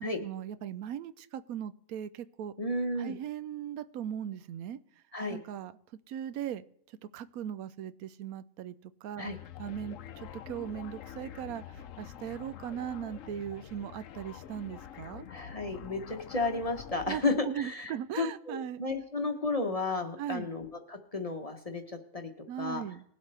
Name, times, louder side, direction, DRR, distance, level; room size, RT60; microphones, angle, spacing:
voice 1, 0.2-2.5 3.0-4.8 5.3-5.7 6.1-6.6 7.0-9.3 9.6-15.2 17.1-18.8 20.2-20.5 22.5-23.0, right 10 dB, 90° right, 15 dB, 1.1 m, -38 dB
voice 2, 2.6-3.2 5.1-5.4 9.2-9.4 15.3-22.3 22.6-22.8, left 3 dB, 30° left, 5 dB, 0.8 m, -33 dB
sound 1, 9.2-17.5, left 10 dB, 70° left, 1.0 m, -46 dB
20.0 x 8.1 x 3.3 m, 0.70 s
omnidirectional pair, 1.5 m